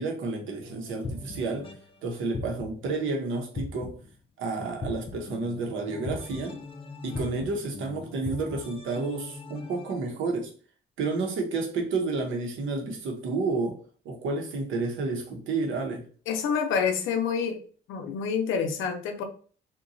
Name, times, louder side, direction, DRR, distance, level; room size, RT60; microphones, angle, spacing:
voice 1, 0.0-1.7 2.0-4.0 4.4-6.6 7.0-10.5 11.0-13.8 14.0-16.1, right 3 dB, 80° right, 0.8 m, -30 dB
sound 1, 0.6-1.9 2.3-2.9 3.5-4.2 4.8-10.0, left 3 dB, 25° left, 0.4 m, -39 dB
voice 2, 16.3-17.6 17.9-19.2, left 6 dB, 85° left, 0.6 m, -27 dB
2.8 x 2.2 x 2.5 m
cardioid pair, 90°, 20 cm